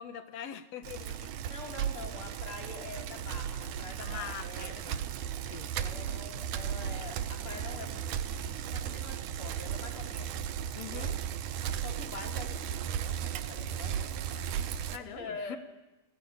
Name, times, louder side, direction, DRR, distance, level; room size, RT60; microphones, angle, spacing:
voice 1, 0.0-1.3 4.0-5.1 5.5-5.7 10.8-11.2 14.9-15.6, left 9 dB, 60° left, 11 dB, 2.0 m, -43 dB
Bicycle, 0.8-15.0, right 9 dB, 70° right, 2.3 m, -36 dB
voice 2, 1.2-4.7 5.7-10.5 10.9-11.1 11.8-14.5 15.0-15.6, left 3 dB, 40° left, 2 dB, 4.3 m, -45 dB
29.0 x 18.0 x 8.7 m, 1.0 s
omnidirectional pair, 3.8 m